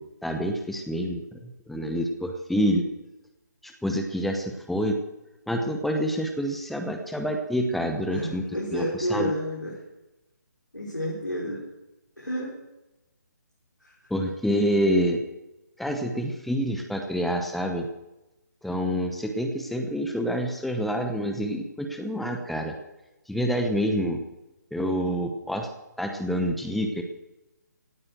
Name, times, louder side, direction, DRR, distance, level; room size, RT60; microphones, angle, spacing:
voice 1, 0.0-2.9 3.6-5.0 5.5-8.4 8.7-9.3 14.1-15.2 15.8-17.9 18.6-22.7 23.3-24.2 24.7-25.7 26.0-27.0, equal, ahead, 4 dB, 0.9 m, -27 dB
voice 2, 8.1-9.8 10.7-11.6 12.2-12.6 13.8-14.1, equal, 90° left, -5 dB, 5.1 m, -31 dB
17.5 x 9.3 x 8.0 m, 0.99 s
figure-of-eight pair, 140°, 10 cm